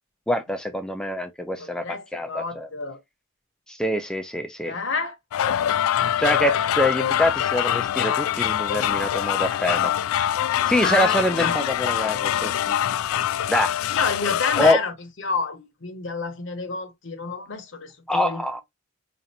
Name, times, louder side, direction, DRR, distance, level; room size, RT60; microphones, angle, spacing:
voice 1, 0.3-2.7 3.7-4.7 6.2-9.9 10.7-12.8 13.5-13.7 14.6-14.8 18.1-18.6, left 1 dB, 5° left, 0.3 m, -25 dB
voice 2, 1.6-3.0 4.6-5.2 5.5-5.8 10.8-11.7 13.9-18.4, left 4 dB, 60° left, 0.8 m, -29 dB
sound 1, 5.3-14.7, left 10 dB, 85° left, 0.3 m, -24 dB
5.2 x 2.4 x 2.7 m
head